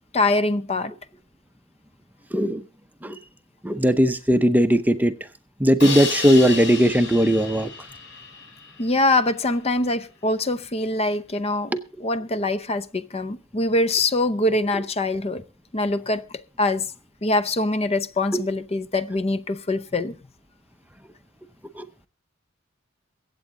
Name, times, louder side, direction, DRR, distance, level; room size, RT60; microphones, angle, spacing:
voice 1, 0.1-0.9 8.8-11.7 12.0-15.4 15.7-16.9 17.2-20.2, left 2 dB, 30° left, 0.7 m, -23 dB
voice 2, 2.3-2.6 3.0-3.2 3.6-5.1 5.6-7.7 18.3-18.4 21.8-21.9, equal, 10° right, 0.6 m, -18 dB
Crash cymbal, 5.8-8.9, left 4 dB, 65° left, 3.7 m, -31 dB
23.5 x 8.4 x 3.8 m
head